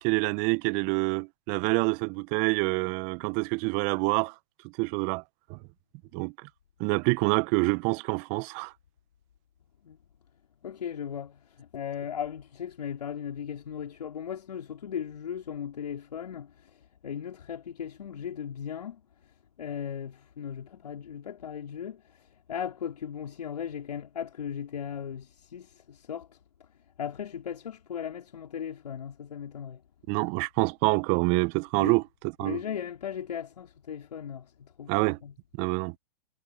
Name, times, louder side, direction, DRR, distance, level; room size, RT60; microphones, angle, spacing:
voice 1, 0.0-4.3 4.8-5.2 5.5-5.6 6.1-6.3 6.8-8.7 30.1-32.6 34.9-35.2 35.6-35.9, right 28 dB, 35° right, 0.9 m, -26 dB
voice 2, 10.6-16.8 17.0-19.0 19.6-26.4 27.0-29.8 31.7-32.0 32.4-35.3, left 8 dB, 70° left, 3.7 m, -37 dB
hypercardioid pair, 120°, 21 cm